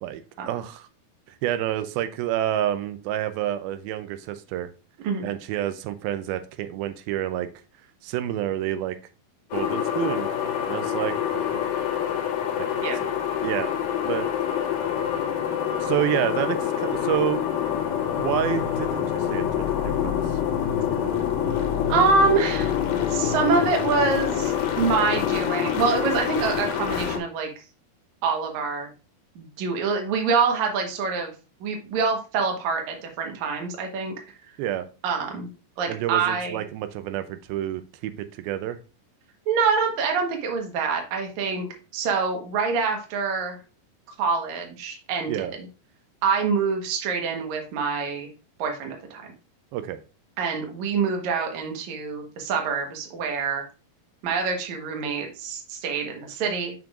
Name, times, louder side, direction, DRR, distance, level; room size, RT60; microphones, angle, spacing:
voice 1, 0.0-0.9 1.4-4.7 5.2-7.5 8.0-9.0 9.5-10.3 10.7-11.6 12.6-13.2 13.4-14.3 15.8-17.4 18.2-20.2 34.6-34.9 35.9-38.8 45.3-45.5 49.7-50.0, right 12 dB, 85° right, 10 dB, 2.4 m, -29 dB
sound 1, 9.5-27.2, left 9 dB, 70° left, 2.2 m, -26 dB
voice 2, 21.9-22.7 23.1-27.5 28.2-28.9 29.4-31.3 31.6-34.1 35.0-35.5 35.8-36.6 39.5-43.6 44.2-45.7 46.2-48.3 48.6-49.3 50.4-53.6 54.2-56.7, right 5 dB, 60° right, 2 dB, 2.2 m, -25 dB
6.9 x 5.9 x 2.4 m, 0.33 s
omnidirectional pair, 4.3 m